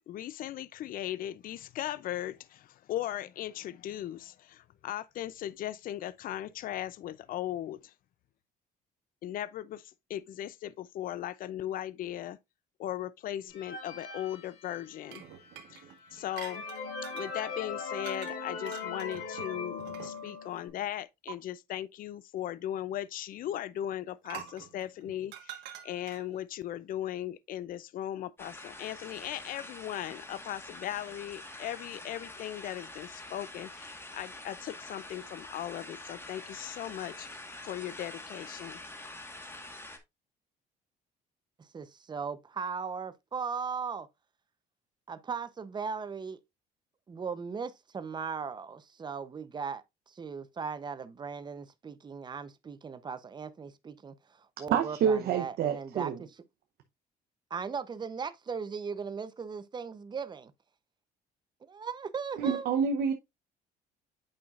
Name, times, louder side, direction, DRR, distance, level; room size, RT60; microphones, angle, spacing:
voice 1, 0.1-7.9 9.2-12.4 12.8-15.2 15.7-15.8 16.1-16.6 17.1-38.8, left 12 dB, 55° left, 0.5 m, -38 dB
sound 1, 13.5-15.1 15.7-15.8 16.2-20.7, left 4 dB, 80° left, 3.9 m, -39 dB
sound 2, 15.1-17.3 18.0-18.4 18.7-20.4 21.3-21.4 24.2-26.4, right 10 dB, 85° right, 1.4 m, -46 dB
sound 3, 28.4-40.0, left 2 dB, 15° left, 1.5 m, -46 dB
voice 2, 41.6-44.1 45.1-46.4 47.1-54.1 54.6-56.3 57.5-60.5 61.7-62.7, right 5 dB, 25° right, 0.7 m, -38 dB
voice 3, 54.7-56.2 62.4-63.1, right 7 dB, 70° right, 0.8 m, -27 dB
8.8 x 5.6 x 2.5 m
cardioid pair, 110°, 17 cm